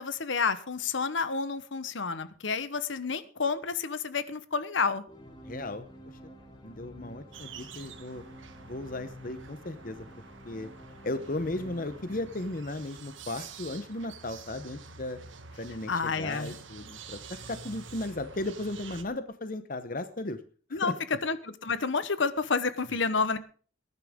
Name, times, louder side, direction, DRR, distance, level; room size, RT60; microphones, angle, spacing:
voice 1, 0.0-5.0 15.9-16.5 20.7-20.9 21.2-23.4, left 4 dB, 70° left, 13 dB, 1.1 m, -30 dB
sound 1, 5.1-13.5, equal, 25° left, 3.2 m, -50 dB
voice 2, 5.4-5.9 6.2-6.3 6.6-8.2 8.7-10.1 10.4-10.7 11.0-15.2 15.6-20.4 20.7-20.9, left 2 dB, 45° left, 11 dB, 0.9 m, -36 dB
sound 2, 7.3-19.0, right 5 dB, 75° right, 1.6 m, -48 dB
20.5 x 11.0 x 3.7 m, 0.40 s
head